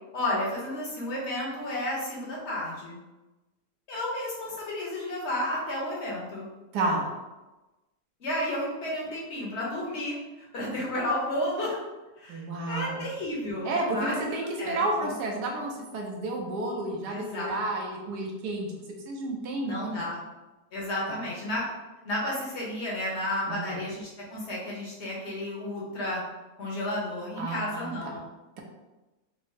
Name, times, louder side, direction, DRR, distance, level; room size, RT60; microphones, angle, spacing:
voice 1, 0.1-3.0 3.9-6.5 8.2-11.8 12.2-15.1 17.1-17.6 19.6-20.2 20.7-21.7 22.0-26.2 26.6-28.2, left 1 dB, 45° left, -4 dB, 1.1 m, -32 dB
voice 2, 6.7-7.1 12.3-13.0 13.6-20.0 21.1-21.2 23.5-23.7 27.4-28.2, right 2 dB, 80° right, 0 dB, 1.2 m, -31 dB
4.5 x 2.0 x 3.2 m, 1.1 s
omnidirectional pair, 1.8 m